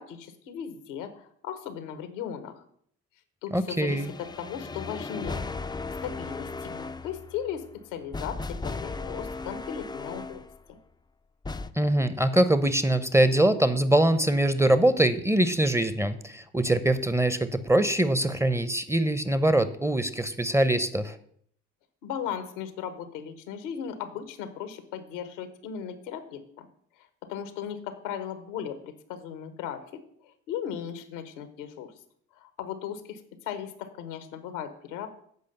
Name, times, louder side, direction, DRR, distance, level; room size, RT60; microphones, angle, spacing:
voice 1, 0.0-2.6 3.4-5.5 6.0-7.6 7.9-10.4 22.0-26.7 27.2-31.9 32.3-35.1, left 8 dB, 85° left, 10 dB, 1.1 m, -37 dB
voice 2, 3.5-4.1 11.7-21.2, right 1 dB, 10° right, 12 dB, 0.8 m, -23 dB
sound 1, 3.9-10.6 11.4-11.7, left 3 dB, 10° left, 0.5 m, -36 dB
8.2 x 5.1 x 6.7 m, 0.64 s
hypercardioid pair, 55°, 36 cm